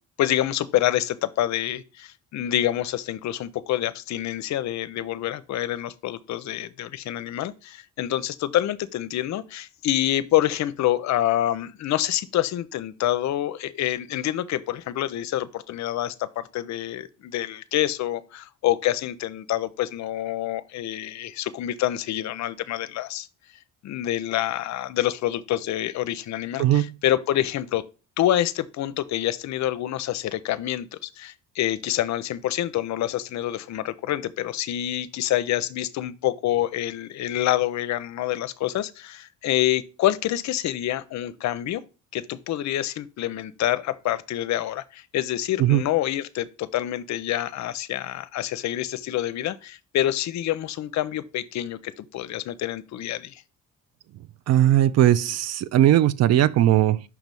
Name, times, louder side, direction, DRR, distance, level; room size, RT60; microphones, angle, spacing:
voice 1, 0.2-23.3 23.8-27.8 28.2-41.8 42.1-53.4, left 13 dB, 60° left, 0.6 m, -27 dB
voice 2, 26.6-26.9 45.6-45.8 54.5-57.0, right 12 dB, 55° right, 0.4 m, -19 dB
5.9 x 3.1 x 5.2 m
cardioid pair, 90°, 31 cm